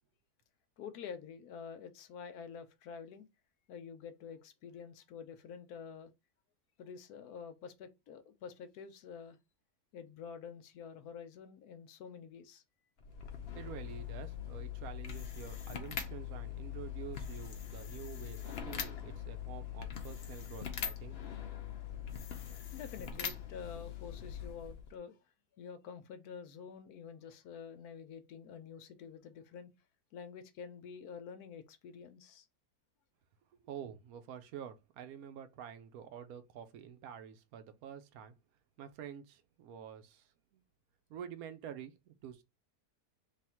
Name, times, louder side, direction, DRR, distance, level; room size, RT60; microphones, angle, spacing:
voice 1, 0.8-3.3 3.7-6.1 6.8-9.4 9.9-12.6 22.7-25.2 25.5-29.7 30.1-32.5, left 6 dB, 75° left, 1.1 m, -48 dB
sound 1, 13.0-25.0, left 8 dB, 60° left, 0.6 m, -42 dB
voice 2, 13.5-21.1 33.6-38.4 38.8-40.6 41.1-42.4, right 9 dB, 70° right, 1.0 m, -48 dB
3.4 x 2.4 x 4.3 m
omnidirectional pair, 1.7 m